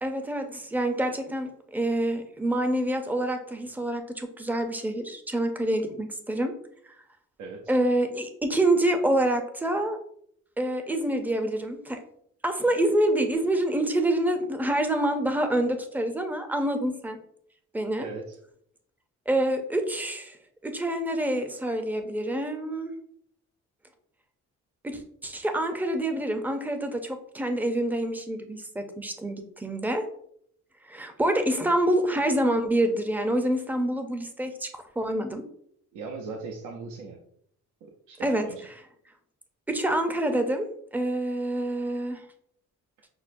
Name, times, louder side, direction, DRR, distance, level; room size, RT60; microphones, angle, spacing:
voice 1, 0.0-6.5 7.7-10.0 10.6-12.0 12.4-17.2 17.7-18.1 19.3-20.4 20.6-22.9 24.8-30.0 30.8-34.7 35.0-35.4 38.2-38.5 39.7-40.7 40.9-42.2, right 1 dB, 5° right, 6 dB, 0.5 m, -27 dB
voice 2, 7.4-7.8 18.0-18.4 35.9-37.2 37.8-38.6, right 4 dB, 80° right, 0 dB, 0.6 m, -39 dB
6.0 x 2.0 x 2.5 m, 0.67 s
cardioid pair, 90°, 30 cm